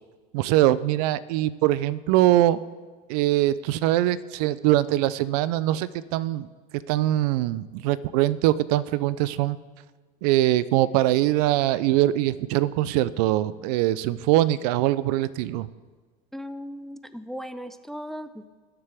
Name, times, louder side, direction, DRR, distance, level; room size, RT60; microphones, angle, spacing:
voice 1, 0.3-2.6 3.1-6.5 6.9-9.6 10.2-15.7, right 14 dB, 75° right, 17 dB, 0.5 m, -22 dB
voice 2, 16.3-18.5, equal, ahead, 12 dB, 0.4 m, -37 dB
18.0 x 6.7 x 3.5 m, 1.4 s
supercardioid pair, 115°, 20 cm